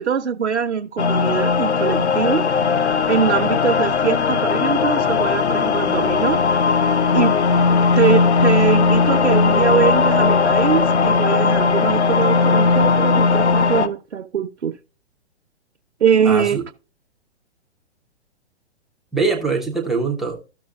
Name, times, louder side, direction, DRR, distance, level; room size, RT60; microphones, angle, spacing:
voice 1, 0.0-2.5 3.1-6.4 7.1-7.7 7.9-14.8 16.0-16.6, right 7 dB, 75° right, 0.8 m, -22 dB
sound 1, 1.0-13.9, left 5 dB, 75° left, 0.9 m, -18 dB
voice 2, 16.2-16.6 19.1-20.4, right 4 dB, ahead, 0.3 m, -22 dB
14.0 x 6.1 x 2.4 m
figure-of-eight pair, 115°, 34 cm